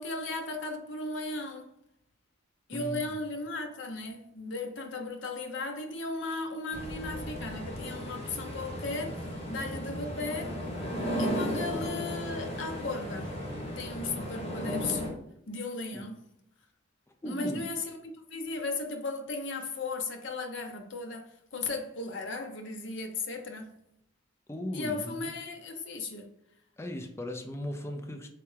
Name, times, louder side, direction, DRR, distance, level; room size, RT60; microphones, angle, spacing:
voice 1, 0.0-1.7 2.7-10.6 11.2-13.4 13.8-15.0 15.5-16.2 17.3-18.0 18.3-23.8 24.7-26.3, left 3 dB, 65° left, 0.7 m, -36 dB
voice 2, 2.7-3.0 15.9-16.0 17.2-17.6 24.5-25.3 26.8-28.3, left 1 dB, 15° left, 0.4 m, -37 dB
sound 1, 6.7-15.1, equal, 30° left, 1.1 m, -35 dB
3.5 x 3.3 x 3.3 m
head